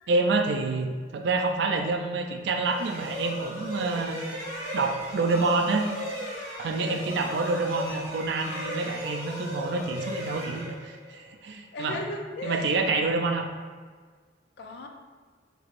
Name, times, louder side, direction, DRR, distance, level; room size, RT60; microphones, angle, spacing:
voice 1, 0.1-4.2 4.7-5.9 6.6-12.0 12.4-13.4, right 3 dB, 65° right, 4 dB, 0.3 m, -27 dB
sound 1, 2.5-11.3, left 1 dB, 20° right, 1.3 m, -36 dB
voice 2, 11.7-12.8 14.6-14.9, left 2 dB, 60° left, 3 dB, 0.4 m, -36 dB
3.1 x 2.9 x 2.5 m, 1.5 s
head